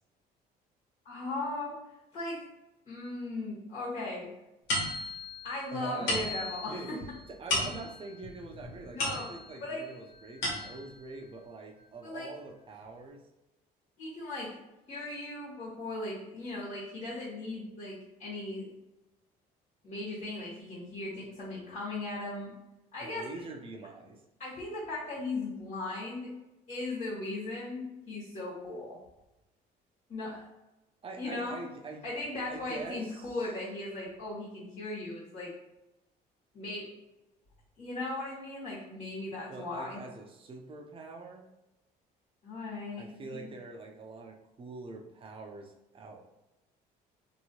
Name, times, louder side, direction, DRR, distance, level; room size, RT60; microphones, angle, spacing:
voice 1, 1.0-1.8 2.1-2.4 2.8-4.3 5.0-5.1 5.4-7.0 8.8-9.3 9.6-9.8 12.0-12.3 14.0-14.5 14.9-18.7 19.8-22.6 22.9-23.4 24.4-26.3 26.7-29.0 30.1-30.4 31.2-31.6 32.0-35.5 36.5-36.9 37.8-40.0 42.4-43.5, left 2 dB, 50° left, -9 dB, 1.5 m, -38 dB
sound 1, 4.7-9.7 10.1-11.0, left 2 dB, 80° left, 1.2 m, -35 dB
voice 2, 5.7-6.2 6.7-6.9 7.4-13.2 23.0-24.2 31.0-32.0 32.5-33.4 39.5-41.4 43.0-46.2, right 3 dB, 30° right, 2 dB, 0.5 m, -44 dB
2.8 x 2.6 x 2.8 m, 0.96 s
cardioid pair, 110°, 17 cm